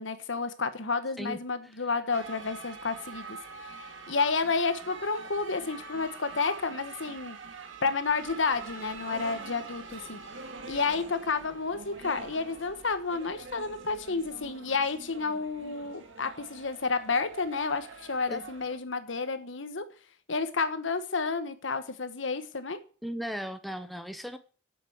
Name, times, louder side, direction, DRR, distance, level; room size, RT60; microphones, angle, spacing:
voice 1, 0.0-3.4 3.7-7.4 7.8-10.2 10.7-19.8 20.3-22.8, left 4 dB, 75° left, 11 dB, 1.2 m, -31 dB
sound 1, 2.1-18.8, right 4 dB, 80° right, 2.0 m, -45 dB
sound 2, 8.2-14.6, equal, 45° left, 3.3 m, -57 dB
voice 2, 23.0-24.4, equal, ahead, 9 dB, 0.7 m, -36 dB
8.2 x 7.7 x 7.8 m, 0.40 s
head